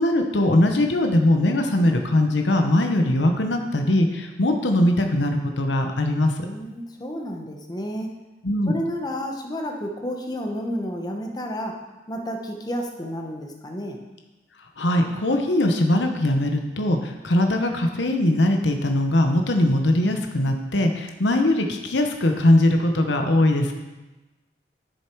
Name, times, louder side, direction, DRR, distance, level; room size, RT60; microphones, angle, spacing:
voice 1, 0.0-6.5 8.4-8.7 14.8-23.7, left 1 dB, 85° left, 4 dB, 1.0 m, -21 dB
voice 2, 6.4-8.1 8.7-11.8 12.1-14.0, equal, 20° left, 2 dB, 1.0 m, -31 dB
11.0 x 6.9 x 4.6 m, 1.1 s
head